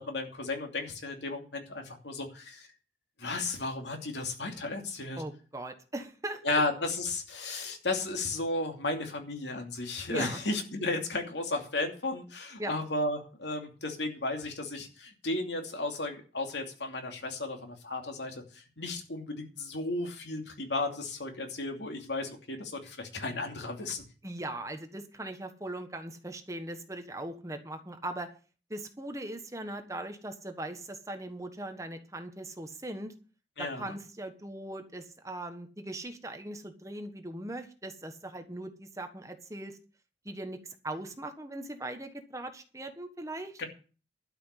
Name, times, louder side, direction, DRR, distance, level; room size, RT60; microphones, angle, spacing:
voice 1, 0.0-2.7 3.2-5.2 6.4-24.0 33.6-33.9 43.6-43.7, left 2 dB, 90° left, 3 dB, 2.8 m, -34 dB
voice 2, 5.2-6.6 10.1-10.4 12.6-12.7 24.2-28.3 28.7-33.1 33.6-39.8 40.2-43.6, right 1 dB, 20° right, 7 dB, 1.3 m, -40 dB
12.0 x 6.0 x 8.3 m, 0.37 s
head